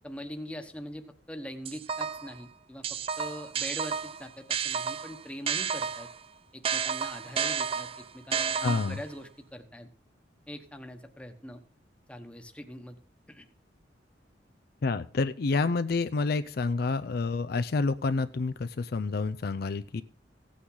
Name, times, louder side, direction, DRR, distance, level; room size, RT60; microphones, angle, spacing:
voice 1, 0.0-6.1 6.5-9.9 10.5-11.6 12.1-13.0 13.3-13.5, equal, 5° left, 6 dB, 1.1 m, -42 dB
sound 1, 1.7-2.4 2.8-6.2 6.6-9.1, right 7 dB, 30° right, 0.4 m, -31 dB
voice 2, 8.6-9.0 14.8-20.0, left 3 dB, 55° left, 12 dB, 0.4 m, -28 dB
16.0 x 8.6 x 3.9 m, 0.41 s
head